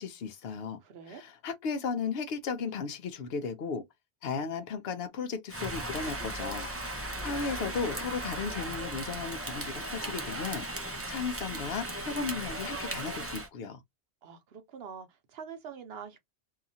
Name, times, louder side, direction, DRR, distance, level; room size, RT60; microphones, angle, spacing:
voice 1, 0.0-0.8 1.1-3.8 4.2-13.8, left 5 dB, 70° left, 0.9 m, -35 dB
voice 2, 0.8-1.2 14.2-16.2, right 6 dB, 70° right, 0.9 m, -45 dB
Rain, 5.5-13.5, right 1 dB, 20° right, 0.4 m, -37 dB
2.8 x 2.4 x 2.6 m
omnidirectional pair, 1.1 m